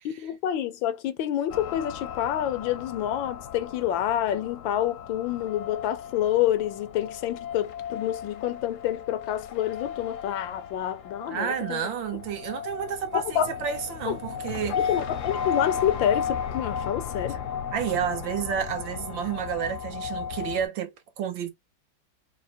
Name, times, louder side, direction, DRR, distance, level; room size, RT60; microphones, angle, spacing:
voice 1, 0.2-11.8 13.1-13.5 14.1-14.2 14.8-17.4, left 11 dB, 85° left, 1.4 m, -28 dB
sound 1, 1.5-20.6, left 7 dB, 65° left, 0.8 m, -35 dB
voice 2, 11.3-15.0 17.7-21.5, right 8 dB, 80° right, 1.7 m, -31 dB
4.7 x 2.0 x 4.3 m
omnidirectional pair, 2.1 m